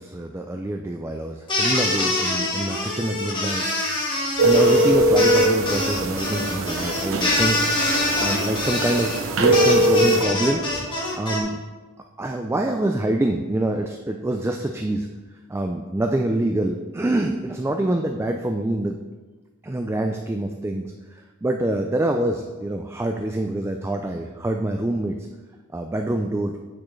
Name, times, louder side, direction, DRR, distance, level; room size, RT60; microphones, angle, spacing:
voice 1, 0.0-3.7 4.4-10.6 11.1-11.6 12.2-15.1 15.5-19.0 19.6-25.2 25.7-26.6, right 1 dB, 10° right, 4 dB, 0.3 m, -26 dB
sound 1, 1.5-11.4, left 2 dB, 25° left, 1.4 m, -25 dB
sound 2, 4.4-10.2, right 1 dB, 85° right, 0.8 m, -21 dB
8.7 x 6.0 x 3.2 m, 1.3 s
head